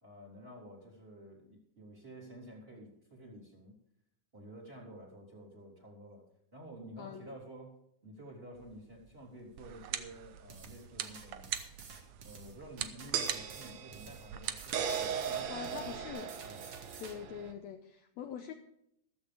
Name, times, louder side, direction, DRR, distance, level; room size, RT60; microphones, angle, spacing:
voice 1, 0.0-3.8 4.3-6.3 6.5-11.5 12.2-16.6, right 1 dB, 15° right, -1 dB, 3.5 m, -51 dB
sound 1, 8.7-8.8 11.2-11.3 13.1-17.5, right 7 dB, 65° right, 2.0 m, -38 dB
sound 2, 9.6-16.1, right 10 dB, 90° right, 1.3 m, -44 dB
sound 3, 10.5-17.2, right 5 dB, 50° right, 2.3 m, -51 dB
voice 2, 15.5-16.3 17.0-18.5, left 9 dB, 75° left, 5 dB, 1.8 m, -43 dB
14.5 x 14.0 x 3.4 m, 0.75 s
omnidirectional pair, 3.8 m